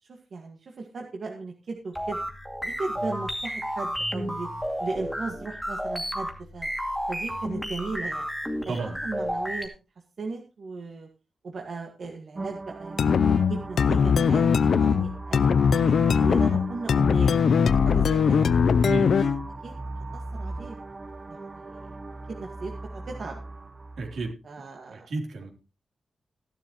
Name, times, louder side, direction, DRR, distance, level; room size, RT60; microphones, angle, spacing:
voice 1, 0.0-2.2 2.6-4.5 4.8-6.7 7.1-8.3 8.7-9.7 10.2-11.1 11.4-14.4 14.8-15.9 16.2-17.4 17.8-18.5 19.1-19.3 19.6-19.7 20.1-20.8 21.3-22.0 22.3-23.4 24.4-25.1, right 4 dB, 55° right, 1 dB, 1.8 m, -37 dB
sound 1, 1.9-9.7, equal, ahead, 2.4 m, -32 dB
voice 2, 8.7-9.0 18.8-19.1 24.0-24.4 24.9-25.5, right 3 dB, 75° right, 2 dB, 3.4 m, -31 dB
sound 2, 12.3-24.3, right 2 dB, 25° right, 0.7 m, -38 dB
sound 3, 13.0-19.5, left 6 dB, 65° left, 0.5 m, -21 dB
15.5 x 11.5 x 3.0 m, 0.31 s
wide cardioid pair, 175°, 0 cm